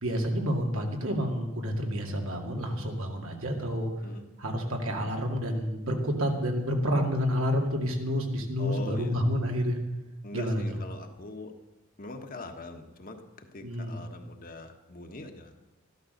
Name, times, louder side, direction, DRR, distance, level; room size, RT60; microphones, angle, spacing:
voice 1, 0.0-3.9 4.4-9.8 10.3-10.6 13.6-14.0, equal, 85° right, 2 dB, 2.3 m, -29 dB
voice 2, 8.6-9.2 10.2-11.5 12.0-15.5, left 2 dB, 45° left, 5 dB, 1.4 m, -42 dB
13.5 x 12.0 x 6.6 m, 1.1 s
head